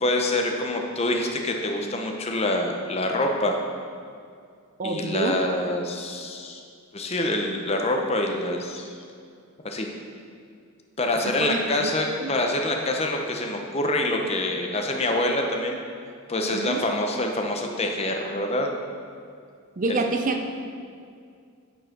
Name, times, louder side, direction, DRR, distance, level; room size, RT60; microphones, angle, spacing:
voice 1, 0.0-3.6 4.8-6.6 6.9-8.9 9.6-9.9 11.0-15.8 16.3-18.7 19.9-20.0, left 1 dB, 30° left, 2 dB, 0.7 m, -26 dB
voice 2, 4.8-5.6 11.2-11.9 12.2-12.3 16.5-16.9 19.8-20.5, right 3 dB, 35° right, 5 dB, 0.5 m, -27 dB
9.2 x 4.6 x 5.9 m, 2.3 s
head